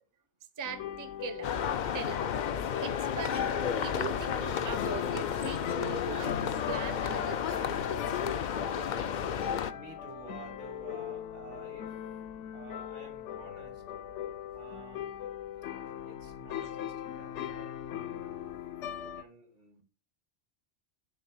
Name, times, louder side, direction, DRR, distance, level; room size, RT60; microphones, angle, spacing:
sound 1, 0.6-19.2, left 10 dB, 75° left, 0.9 m, -40 dB
voice 1, 0.6-1.6 1.9-2.2 2.8-3.5 3.8-7.7 16.6-16.7, right 6 dB, 20° right, 0.5 m, -41 dB
sound 2, 1.4-9.7, left 8 dB, 60° left, 0.5 m, -32 dB
voice 2, 9.7-12.0 12.5-13.8 14.5-15.1 16.0-19.8, right 3 dB, 75° right, 2.4 m, -51 dB
7.1 x 3.7 x 6.2 m
omnidirectional pair, 1.2 m